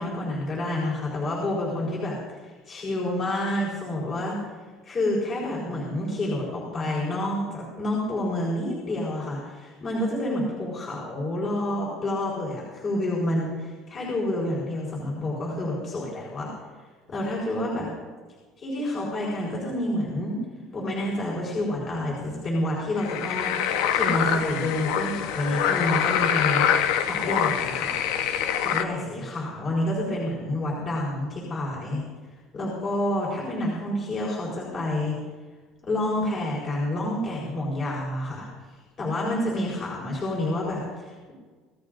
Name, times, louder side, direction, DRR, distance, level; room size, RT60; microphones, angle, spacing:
voice 1, 0.0-2.2 2.4-4.4 4.8-16.5 17.1-17.9 18.6-20.4 20.7-26.7 27.0-28.0 28.6-32.0 32.5-35.2 35.8-38.5 39.0-41.3, left 1 dB, 30° left, -5 dB, 4.3 m, -28 dB
sound 1, 23.0-28.9, left 9 dB, 90° left, 1.0 m, -25 dB
26.5 x 16.5 x 2.6 m, 1.4 s
cardioid pair, 170°, 0 cm